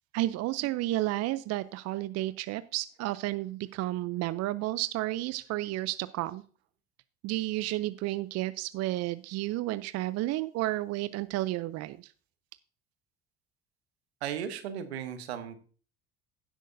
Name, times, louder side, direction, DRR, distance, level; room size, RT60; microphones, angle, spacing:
voice 1, 0.1-6.4 7.2-12.1, right 16 dB, 55° right, 15 dB, 0.5 m, -32 dB
voice 2, 14.2-15.6, right 9 dB, 85° right, 10 dB, 1.1 m, -36 dB
17.0 x 6.3 x 2.6 m, 0.40 s
hypercardioid pair, 65°, 31 cm